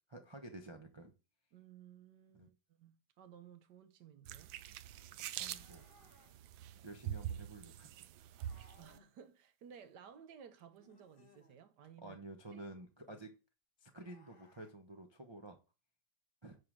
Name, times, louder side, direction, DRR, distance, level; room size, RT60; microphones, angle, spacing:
voice 1, 0.1-1.1 2.3-2.5 5.4-5.8 6.8-7.9 12.0-13.3 13.8-15.6 16.4-16.6, right 2 dB, 30° right, 0.4 m, -51 dB
voice 2, 1.5-4.6 8.8-12.2 12.5-12.6 13.1-13.2, right 8 dB, 65° right, 1.3 m, -57 dB
sound 1, 4.3-9.0, right 11 dB, 85° right, 1.4 m, -45 dB
sound 2, 5.4-6.4 8.4-9.1 10.8-11.6 13.9-14.7, left 3 dB, 30° left, 1.6 m, -66 dB
9.5 x 3.7 x 6.1 m
omnidirectional pair, 2.1 m